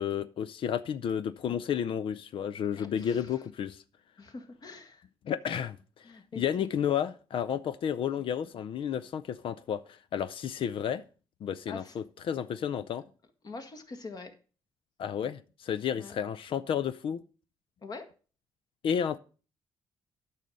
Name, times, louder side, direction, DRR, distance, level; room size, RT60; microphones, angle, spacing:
voice 1, 0.0-3.8 5.2-6.0 6.4-11.0 11.4-13.0 15.0-17.2 18.8-19.2, left 8 dB, 65° left, 0.5 m, -32 dB
voice 2, 2.7-3.3 4.2-5.0 6.0-6.7 11.7-12.0 13.4-14.3 16.0-16.1 17.8-18.1, left 3 dB, 40° left, 1.6 m, -44 dB
9.1 x 5.6 x 6.2 m
cardioid pair, 85°, 10 cm